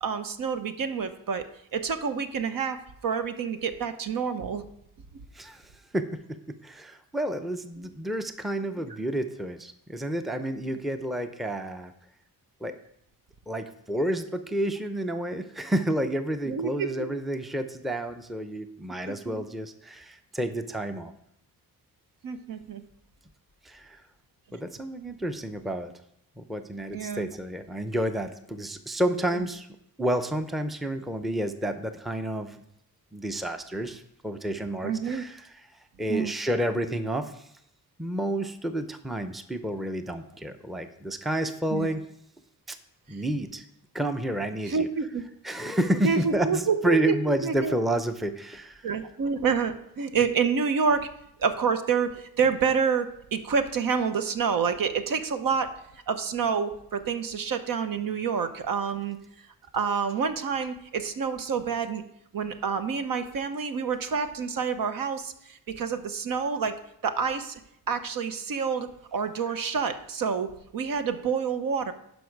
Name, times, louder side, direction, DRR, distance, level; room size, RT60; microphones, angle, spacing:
voice 1, 0.0-1.5 1.7-2.8 3.0-4.6 16.5-17.1 19.1-19.4 22.2-22.8 26.9-27.3 34.8-35.2 36.1-36.3 41.7-41.9 44.7-45.2 46.0-47.7 48.8-51.1 51.4-55.7 56.1-59.2 59.7-62.0 62.3-66.8 67.0-67.6 67.9-70.5 70.7-71.9, right 6 dB, 60° right, 9 dB, 0.9 m, -28 dB
voice 2, 5.3-11.9 12.6-12.7 13.5-21.1 23.6-24.0 24.5-25.9 26.4-29.7 30.0-32.6 33.1-35.5 36.0-37.5 38.0-42.0 42.7-42.8 43.1-43.6 43.9-44.9 45.4-48.9, right 1 dB, ahead, 8 dB, 0.6 m, -30 dB
11.5 x 5.3 x 4.6 m, 0.75 s
cardioid pair, 85°, 37 cm